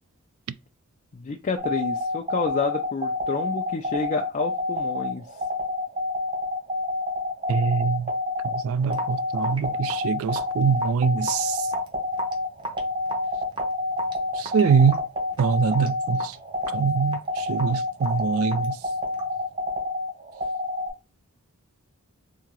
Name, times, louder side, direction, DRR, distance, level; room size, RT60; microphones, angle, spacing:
voice 1, 1.1-5.3, left 4 dB, 35° left, 0.3 m, -29 dB
sound 1, 1.6-20.9, left 1 dB, 35° right, 1.3 m, -28 dB
voice 2, 7.5-8.1 8.6-11.5 14.4-15.0 15.4-16.2 16.7-17.2 17.5-18.7, right 6 dB, 65° right, 0.3 m, -23 dB
Raindrop / Drip, 8.9-19.4, right 1 dB, 20° right, 0.7 m, -38 dB
3.6 x 2.8 x 3.0 m
head